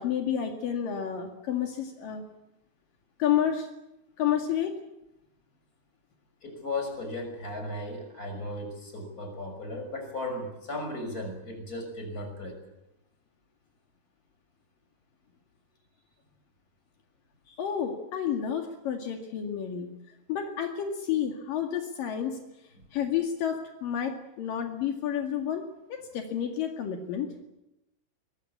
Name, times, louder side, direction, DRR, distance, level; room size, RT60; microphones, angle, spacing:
voice 1, 0.0-2.2 3.2-3.7 4.2-4.7 17.5-19.9 20.3-22.4 22.9-25.6 25.9-27.3, left 9 dB, 75° left, 3 dB, 3.8 m, -30 dB
voice 2, 6.4-12.6, left 1 dB, 25° left, 5 dB, 6.4 m, -36 dB
23.0 x 22.0 x 8.5 m, 0.90 s
omnidirectional pair, 4.0 m